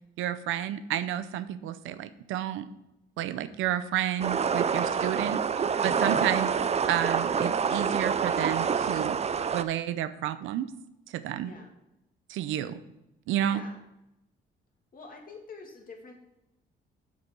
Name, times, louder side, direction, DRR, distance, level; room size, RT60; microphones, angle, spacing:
voice 1, 0.2-2.7 3.2-6.5 6.9-9.2 9.5-10.7 11.1-11.5 12.3-12.8 13.3-13.6, right 11 dB, 90° right, 13 dB, 0.6 m, -31 dB
sound 1, 4.2-9.6, right 6 dB, 35° right, 0.5 m, -27 dB
voice 2, 11.4-11.7 13.4-13.8 14.9-16.1, left 4 dB, 45° left, 1 dB, 2.5 m, -46 dB
8.0 x 7.0 x 5.3 m, 0.88 s
cardioid pair, 90°, 20 cm